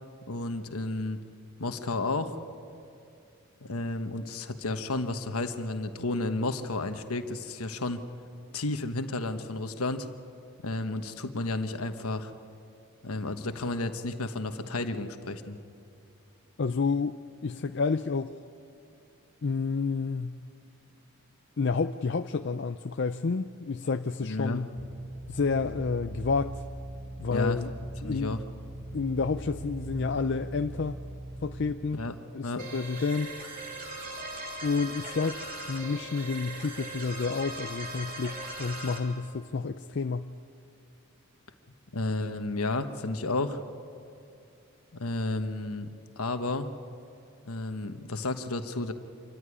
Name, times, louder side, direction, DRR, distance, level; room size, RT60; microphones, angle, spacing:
voice 1, 0.3-1.2 1.6-2.4 3.6-8.0 8.5-10.1 10.6-12.3 13.0-15.6 24.2-24.6 27.3-27.6 28.0-28.4 32.0-32.1 32.4-32.6 41.9-43.6 44.9-45.9 46.2-46.7 47.5-48.9, left 2 dB, 85° left, 8 dB, 1.3 m, -32 dB
voice 2, 16.6-17.2 17.4-18.4 19.4-20.4 21.6-24.7 25.3-26.6 27.2-27.7 28.0-28.4 28.9-31.0 31.4-32.0 32.3-33.4 34.6-35.4 35.7-40.3, left 4 dB, 55° left, 8 dB, 0.5 m, -30 dB
sound 1, 24.8-31.7, right 1 dB, 5° right, 2.6 m, -40 dB
sound 2, 32.6-39.0, right 2 dB, 40° right, 3.2 m, -39 dB
26.0 x 14.5 x 10.0 m, 2.5 s
head